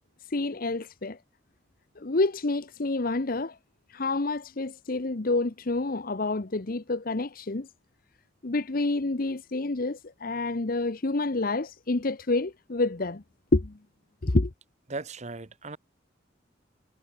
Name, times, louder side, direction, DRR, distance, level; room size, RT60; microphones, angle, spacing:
voice 1, 0.3-1.2 2.0-3.6 3.9-7.7 8.4-13.2 13.5-13.8 14.2-14.5, left 2 dB, 50° left, 0.9 m, -28 dB
voice 2, 14.9-15.8, right 3 dB, 35° right, 1.2 m, -37 dB
head